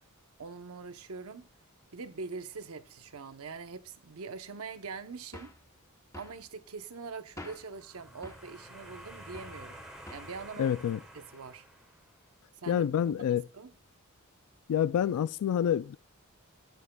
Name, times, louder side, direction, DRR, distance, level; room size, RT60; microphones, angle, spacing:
voice 1, 0.4-1.5 1.9-5.5 6.1-9.8 10.1-10.8 11.1-11.6 12.6-13.7, right 4 dB, 70° right, 0.8 m, -43 dB
sound 1, 5.3-5.6 6.1-6.4 7.4-7.7 8.2-8.5 9.3-9.6 10.1-10.4, left 1 dB, 15° left, 0.8 m, -47 dB
sound 2, 7.6-12.3, right 1 dB, 5° right, 1.5 m, -50 dB
voice 2, 10.6-11.0 12.7-13.5 14.7-16.0, left 9 dB, 75° left, 0.3 m, -27 dB
11.0 x 9.0 x 2.2 m
head